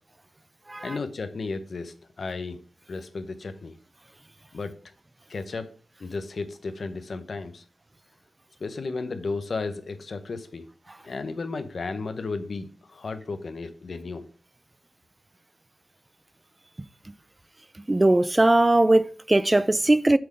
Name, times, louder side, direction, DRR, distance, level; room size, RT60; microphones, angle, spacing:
voice 1, 0.8-2.6 2.9-3.8 4.5-4.7 5.3-5.7 6.0-7.6 8.6-10.7 11.0-14.2, left 3 dB, 65° left, 0.8 m, -34 dB
voice 2, 17.9-20.2, right 2 dB, 25° right, 0.4 m, -20 dB
7.8 x 3.7 x 5.1 m
cardioid pair, 45°, 0 cm